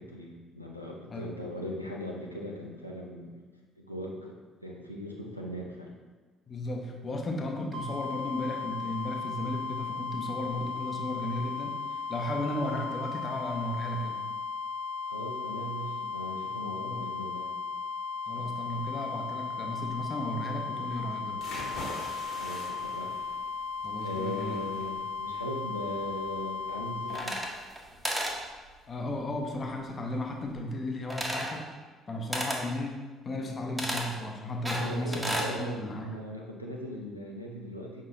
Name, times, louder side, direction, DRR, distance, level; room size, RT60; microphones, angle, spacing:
voice 1, 0.0-3.4 3.8-4.3 4.6-5.9 15.0-17.5 22.2-23.2 24.0-27.4 34.8-38.0, left 1 dB, 90° left, -2 dB, 0.4 m, -39 dB
voice 2, 6.5-14.2 16.8-17.1 18.3-21.4 23.8-24.7 28.9-31.7 32.1-33.0 33.2-36.1, left 1 dB, 35° left, 2 dB, 0.6 m, -35 dB
sound 1, 7.7-27.2, left 5 dB, 60° right, 0.4 m, -36 dB
sound 2, 21.3-30.6, left 1 dB, 55° left, 1.4 m, -46 dB
sound 3, 27.1-27.8 28.0-28.4 31.1-31.6 32.3-32.6 33.8-34.1 34.7-35.5, right 1 dB, 10° right, 0.7 m, -32 dB
5.3 x 3.7 x 2.5 m, 1.3 s
figure-of-eight pair, 50°, 0 cm